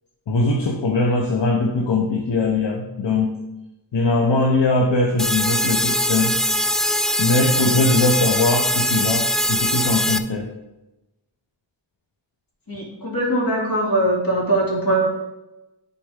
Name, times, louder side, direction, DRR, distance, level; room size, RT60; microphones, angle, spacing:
voice 1, 0.3-3.4 3.9-6.4 7.2-10.5, left 2 dB, 75° left, 0 dB, 0.9 m, -21 dB
sound 1, 5.2-10.2, equal, ahead, 0.3 m, -21 dB
voice 2, 12.7-15.1, right 1 dB, 50° left, -4 dB, 2.9 m, -21 dB
11.0 x 4.2 x 3.7 m, 0.98 s
wide cardioid pair, 80°, 43 cm